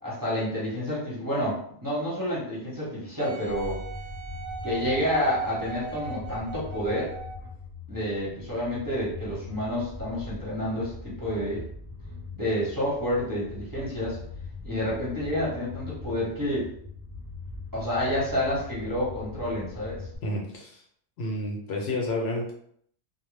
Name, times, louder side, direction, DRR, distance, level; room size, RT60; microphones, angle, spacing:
voice 1, 0.0-3.8 4.6-7.1 7.9-11.6 12.4-14.2 14.6-16.7 17.7-20.0, equal, 20° right, -8 dB, 0.8 m, -29 dB
Wind instrument woodwind instrument, 3.2-7.5 8.2-8.3, right 4 dB, 55° right, 0.7 m, -39 dB
sound 1, 3.4-20.2, left 3 dB, 40° right, 0.3 m, -41 dB
voice 2, 20.2-20.8 21.2-22.5, left 1 dB, 70° left, 0 dB, 0.8 m, -30 dB
2.1 x 2.1 x 3.2 m, 0.65 s
omnidirectional pair, 1.2 m